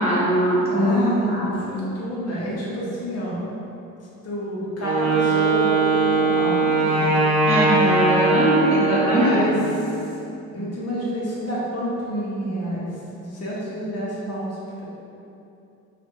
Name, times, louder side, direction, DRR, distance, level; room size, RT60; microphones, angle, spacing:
voice 1, 0.0-1.0 1.3-1.8 7.5-9.4, equal, 20° right, -9 dB, 1.4 m, -21 dB
voice 2, 0.7-3.4 4.2-7.1 8.9-9.5 10.5-12.9 13.1-14.8, equal, 45° left, -6 dB, 1.0 m, -28 dB
Wind instrument woodwind instrument, 4.8-9.7, right 3 dB, 75° right, 0.8 m, -20 dB
3.0 x 2.4 x 3.0 m, 2.8 s
supercardioid pair, 65°, 34 cm